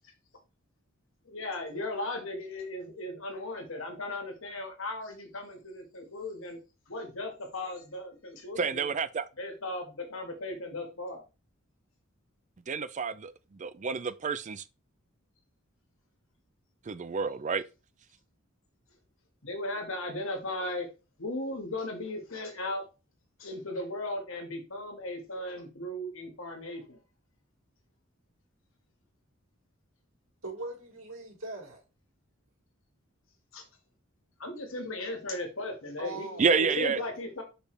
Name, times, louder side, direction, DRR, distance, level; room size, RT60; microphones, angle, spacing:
voice 1, 1.3-6.6 6.9-8.9 9.4-11.2 19.4-20.9 21.2-22.8 23.4-27.0 33.5-33.6 34.4-37.4, left 2 dB, 70° left, 1.7 m, -37 dB
voice 2, 8.6-9.3 12.7-14.6 16.9-17.6 36.4-37.0, right 5 dB, 35° right, 0.4 m, -29 dB
voice 3, 30.4-31.8 36.0-37.1, right 2 dB, 75° right, 2.8 m, -41 dB
6.4 x 5.1 x 3.3 m
head